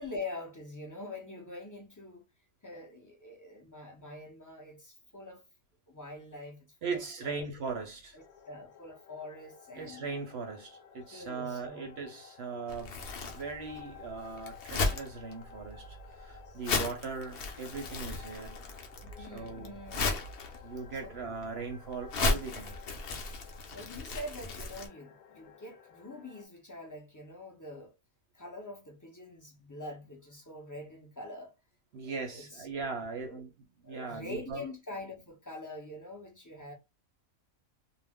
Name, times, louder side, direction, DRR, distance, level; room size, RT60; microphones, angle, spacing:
voice 1, 0.0-2.2 2.6-5.4 5.9-7.5 8.1-10.1 11.1-11.9 16.5-16.6 19.0-20.2 21.0-21.2 23.6-27.9 28.3-31.5 32.0-32.9 33.2-33.4 33.8-36.7, left 2 dB, 30° left, 0.3 m, -45 dB
voice 2, 6.8-8.2 9.7-13.0 13.3-18.6 19.2-19.8 20.6-22.8 31.9-34.6, right 4 dB, 60° right, 0.7 m, -39 dB
sound 1, 8.2-26.4, left 8 dB, 85° left, 1.1 m, -54 dB
Crumpling crinkling, 12.7-24.9, left 3 dB, 55° left, 0.7 m, -36 dB
2.3 x 2.1 x 3.4 m
omnidirectional pair, 1.5 m